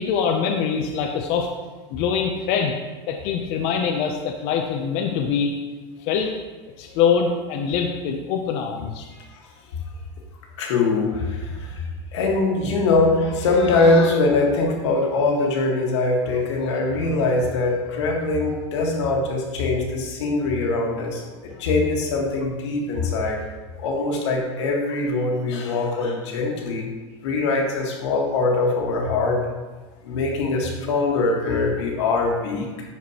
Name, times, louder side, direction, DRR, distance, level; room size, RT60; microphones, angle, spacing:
voice 1, 0.0-1.5 1.9-2.8 3.1-5.5 6.0-6.3 6.8-9.1, left 6 dB, 40° left, 2 dB, 0.5 m, -23 dB
voice 2, 10.6-23.4 23.8-26.9 27.2-29.4 30.0-32.7, left 3 dB, 75° left, 0 dB, 1.5 m, -22 dB
11.0 x 4.5 x 2.9 m, 1.3 s
supercardioid pair, 170°, 15 cm